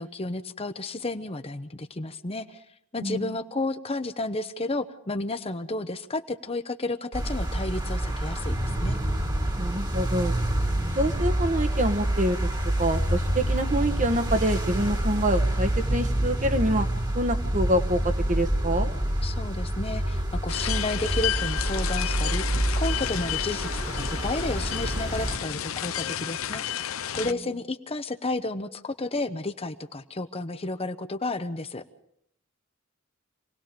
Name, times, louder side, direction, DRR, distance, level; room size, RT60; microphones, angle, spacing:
voice 1, 0.0-2.6 2.9-9.0 19.2-26.8 27.1-31.8, left 2 dB, 30° left, 9 dB, 0.9 m, -32 dB
voice 2, 3.0-3.3 9.6-10.4 11.0-12.4 12.8-16.9 17.1-18.9, right 1 dB, 40° right, 8 dB, 1.3 m, -26 dB
sound 1, 7.1-25.4, right 1 dB, 20° right, 1.9 m, -27 dB
sound 2, 20.5-27.3, left 10 dB, 90° left, 0.7 m, -31 dB
27.5 x 18.5 x 5.2 m, 0.74 s
head